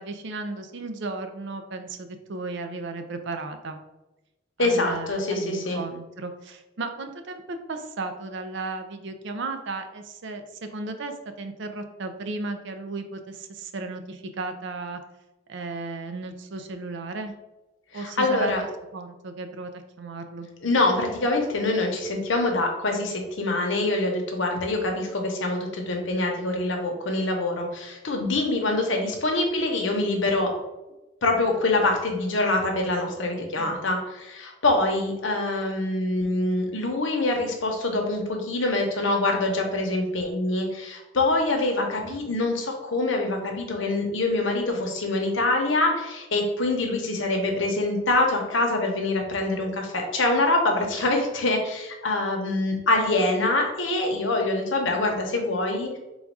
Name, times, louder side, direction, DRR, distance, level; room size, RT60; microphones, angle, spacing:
voice 1, 0.0-3.8 4.6-15.0 15.5-17.3 17.9-19.7 20.0-20.5 33.6-33.8 42.0-42.2, right 3 dB, 65° right, 7 dB, 0.5 m, -35 dB
voice 2, 4.6-5.8 17.9-18.6 20.6-30.5 31.2-56.0, left 2 dB, 75° left, 2 dB, 0.9 m, -25 dB
3.9 x 2.3 x 4.6 m, 1.0 s
head